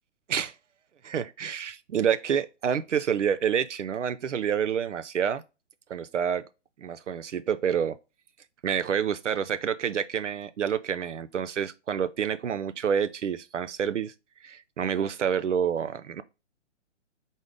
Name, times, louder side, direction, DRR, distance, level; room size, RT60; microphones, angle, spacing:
voice 1, 1.0-5.4 5.9-6.4 6.8-8.0 8.6-14.1 14.4-16.2, right 8 dB, 70° right, 0.5 m, -28 dB
4.0 x 3.6 x 3.3 m
figure-of-eight pair, 130°, 37 cm